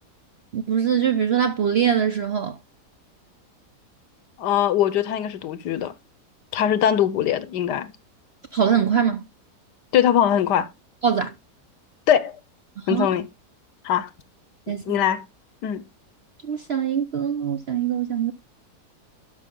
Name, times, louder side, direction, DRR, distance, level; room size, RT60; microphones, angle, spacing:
voice 1, 0.5-2.6 8.5-9.2 11.0-11.3 12.9-13.1 14.7-15.0 16.4-18.3, right 8 dB, 60° right, 0.6 m, -22 dB
voice 2, 4.4-5.9 6.5-7.9 9.9-10.7 12.1-12.3 12.9-13.3 13.8-14.1 14.7-15.2 15.6-15.8, left 10 dB, 80° left, 1.4 m, -21 dB
12.0 x 5.6 x 3.6 m
omnidirectional pair, 1.8 m